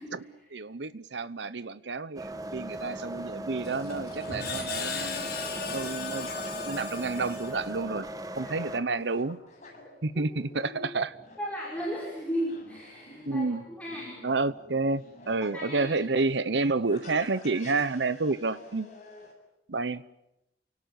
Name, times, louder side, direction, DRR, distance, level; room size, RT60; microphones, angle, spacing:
voice 1, 0.0-0.5 8.4-8.5 11.4-13.5 13.8-14.2 15.5-16.1, equal, 10° left, 5.8 m, -35 dB
voice 2, 0.5-5.3 5.7-6.3 6.6-8.1 8.4-9.4 10.0-11.1 13.3-13.6 14.2-18.9 19.7-20.0, right 3 dB, 75° right, 0.9 m, -30 dB
sound 1, 2.2-8.8, right 1 dB, 20° right, 1.5 m, -38 dB
Screech, 3.6-7.9, left 5 dB, 60° left, 6.2 m, -37 dB
sound 2, 3.9-19.3, left 2 dB, 40° left, 7.4 m, -50 dB
29.5 x 18.5 x 9.6 m
head